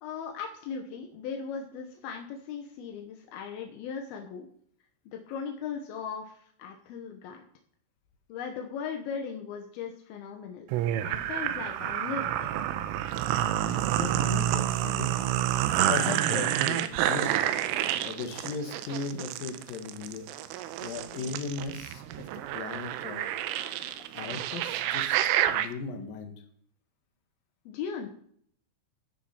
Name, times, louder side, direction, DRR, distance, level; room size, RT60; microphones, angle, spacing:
voice 1, 0.0-4.5 5.1-7.4 8.3-10.7 11.0-12.5 27.7-28.1, left 6 dB, 75° left, 3 dB, 2.2 m, -38 dB
sound 1, 10.7-25.7, right 12 dB, 85° right, 3.3 m, -29 dB
voice 2, 13.9-15.3 15.8-17.4 18.0-20.3 20.8-22.3 22.5-23.2 24.1-25.2 25.5-26.3, left 4 dB, 60° left, 5 dB, 2.6 m, -37 dB
13.5 x 7.4 x 5.7 m, 0.62 s
omnidirectional pair, 5.8 m